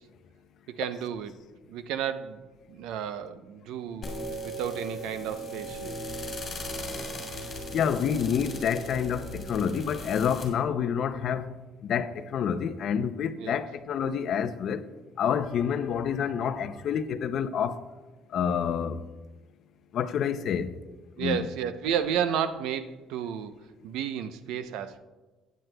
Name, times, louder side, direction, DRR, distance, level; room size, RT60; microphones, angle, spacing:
voice 1, 0.8-1.3 1.7-2.4 2.7-4.1 4.4-5.9 13.4-13.6 21.2-23.5 23.8-25.0, right 8 dB, 90° right, 0.6 m, -32 dB
sound 1, 4.0-10.5, equal, 25° left, 2.4 m, -37 dB
voice 2, 7.7-11.6 11.8-14.9 15.2-17.8 18.3-19.0 19.9-20.7 21.2-21.5, left 7 dB, 50° left, 0.5 m, -28 dB
15.0 x 9.3 x 2.2 m
cardioid pair, 170°, 0 cm